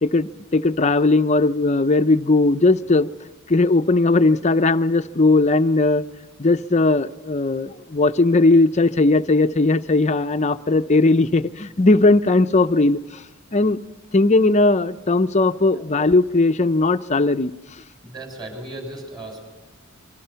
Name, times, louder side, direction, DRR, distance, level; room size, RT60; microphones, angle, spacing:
voice 1, 0.0-3.1 3.5-6.0 6.4-13.2 13.5-13.8 14.1-17.5, left 2 dB, 35° left, 10 dB, 0.7 m, -18 dB
voice 2, 18.0-19.5, right 1 dB, 20° right, 3 dB, 6.5 m, -36 dB
26.5 x 24.0 x 5.7 m, 1.2 s
head